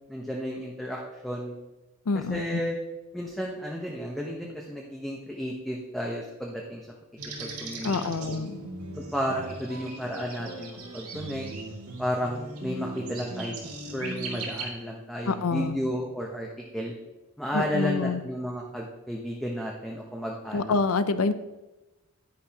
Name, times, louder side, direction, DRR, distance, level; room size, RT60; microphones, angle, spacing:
voice 1, 0.1-1.6 2.3-2.7 3.1-6.9 7.4-7.9 8.2-8.4 9.0-11.4 12.0-13.5 13.9-16.5 16.7-16.9 17.4-20.7, equal, ahead, -2 dB, 0.8 m, -32 dB
voice 2, 2.1-2.6 7.8-8.7 15.2-15.8 17.5-18.2 20.5-21.3, left 4 dB, 75° left, 12 dB, 0.6 m, -27 dB
sound 1, 7.2-14.6, right 2 dB, 80° right, 2.2 m, -38 dB
10.0 x 10.0 x 2.9 m, 1.1 s
head